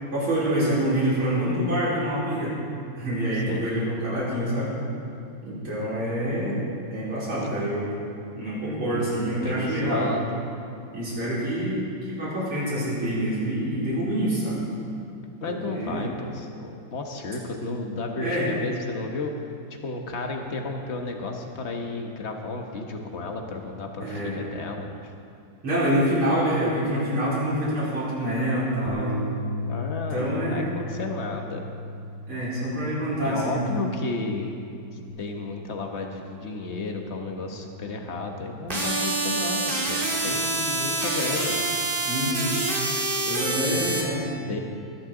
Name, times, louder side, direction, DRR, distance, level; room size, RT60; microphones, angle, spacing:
voice 1, 0.1-2.5 3.0-4.7 5.4-6.6 6.9-7.9 8.4-10.1 10.9-14.6 15.4-16.0 18.2-18.5 24.0-24.4 25.6-29.2 30.1-30.7 32.3-33.6 42.1-42.6 43.3-44.3, right 1 dB, 70° right, -9 dB, 5.4 m, -26 dB
voice 2, 8.9-10.4 15.4-19.3 19.8-24.9 29.7-31.6 33.2-34.5 34.9-41.6 43.7-44.0 44.4-44.6, left 3 dB, 40° left, 3 dB, 1.2 m, -33 dB
Bass guitar, 28.9-35.1, left 2 dB, 70° left, 1.8 m, -36 dB
sound 1, 38.7-44.0, right 2 dB, 25° right, 2.0 m, -26 dB
20.5 x 12.0 x 3.9 m, 2.5 s
omnidirectional pair, 2.3 m